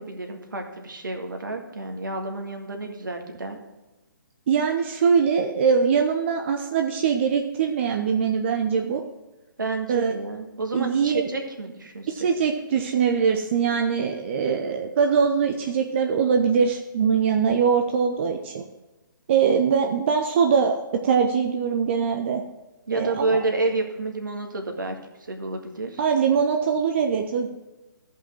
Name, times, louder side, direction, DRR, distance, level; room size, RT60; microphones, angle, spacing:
voice 1, 0.0-3.6 9.6-12.3 22.9-26.0, right 3 dB, 70° right, 4 dB, 1.8 m, -29 dB
voice 2, 4.5-9.0 9.9-10.1 10.7-11.3 12.1-18.6 19.3-22.4 22.9-23.4 26.0-27.5, right 6 dB, 35° right, 4 dB, 0.6 m, -22 dB
14.0 x 5.5 x 4.5 m, 1.1 s
figure-of-eight pair, 135°, 11 cm